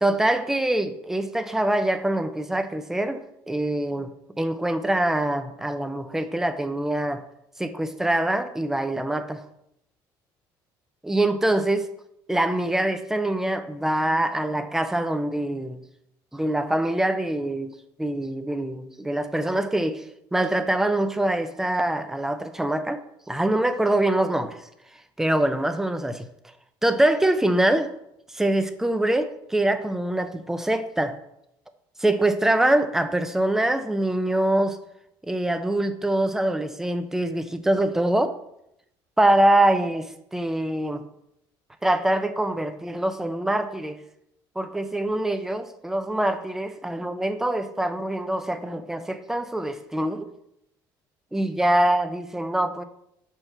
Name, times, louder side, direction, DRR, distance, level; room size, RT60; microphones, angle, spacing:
voice 1, 0.0-4.1 4.4-7.2 7.6-9.4 11.0-11.9 12.3-15.8 16.3-20.0 20.3-24.6 25.2-26.3 26.8-27.9 28.3-31.2 32.0-34.8 35.2-38.4 39.2-41.1 41.8-44.0 44.6-50.3 51.3-52.8, right 1 dB, 5° right, 0.4 m, -24 dB
6.5 x 4.6 x 4.3 m
cardioid pair, 155°, 8 cm